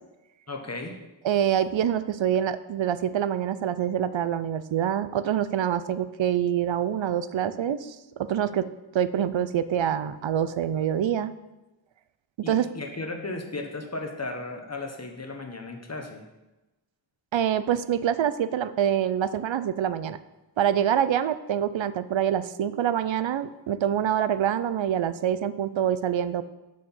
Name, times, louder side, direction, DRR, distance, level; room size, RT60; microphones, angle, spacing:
voice 1, 0.5-1.0 12.4-16.2, left 2 dB, 35° left, 3 dB, 1.3 m, -35 dB
voice 2, 1.2-8.7 8.9-11.3 12.4-12.7 17.3-20.2 20.6-26.4, right 9 dB, 80° right, 14 dB, 0.5 m, -26 dB
7.0 x 6.2 x 5.4 m, 1.0 s
wide cardioid pair, 80°, 44 cm